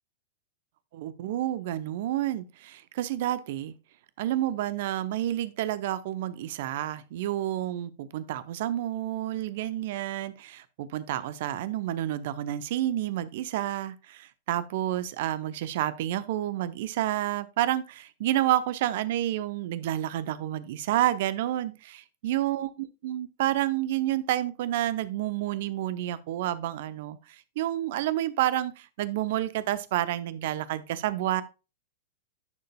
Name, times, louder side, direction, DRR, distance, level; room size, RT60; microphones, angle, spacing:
voice 1, 0.9-3.7 4.2-31.4, right 13 dB, 55° right, 0.7 m, -29 dB
11.0 x 6.5 x 2.3 m
figure-of-eight pair, 95°, 0 cm